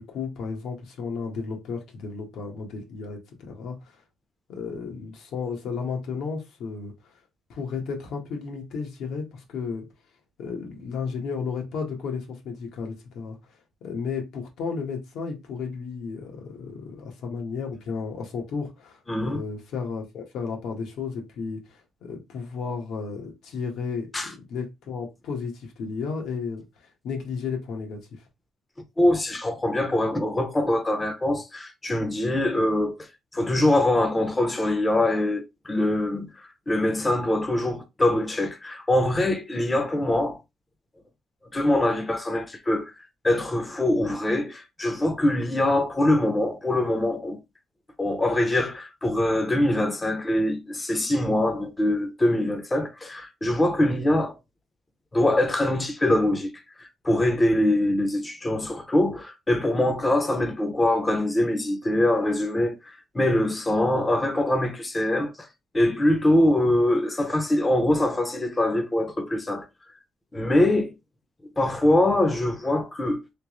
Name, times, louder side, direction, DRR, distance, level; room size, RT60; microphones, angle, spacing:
voice 1, 0.0-3.2 3.5-3.9 4.5-6.9 7.5-9.9 10.4-13.4 13.8-26.6 27.0-28.2, left 5 dB, 75° left, 1.2 m, -33 dB
voice 2, 19.1-19.4 24.1-24.3 29.0-32.9 33.3-40.4 41.5-42.9 43.2-47.4 48.0-54.4 55.1-56.5 56.8-65.5 65.7-69.7 70.3-70.9 71.6-73.2, left 1 dB, 15° left, 0.7 m, -23 dB
3.4 x 3.0 x 3.0 m
cardioid pair, 145°, 0 cm